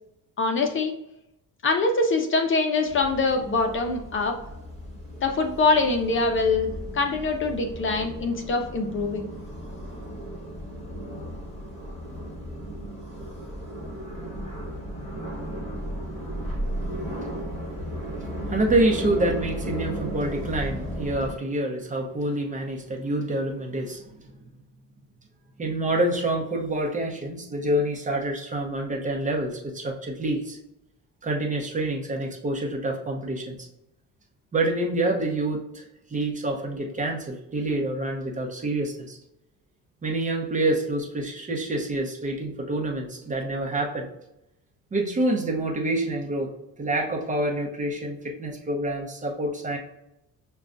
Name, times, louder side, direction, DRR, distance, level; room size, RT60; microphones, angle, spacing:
voice 1, 0.4-0.9 1.6-4.3 5.2-9.3, left 3 dB, 40° left, 4 dB, 0.5 m, -24 dB
sound 1, 2.9-21.3, equal, 20° left, 1.4 m, -35 dB
voice 2, 16.6-17.0 18.2-24.1 25.6-30.6 31.2-33.7 34.5-35.8 36.1-39.2 40.0-44.1 44.9-46.5 46.8-49.8, right 1 dB, 25° right, 0 dB, 0.8 m, -27 dB
6.3 x 2.3 x 2.5 m, 0.85 s
cardioid pair, 135°, 32 cm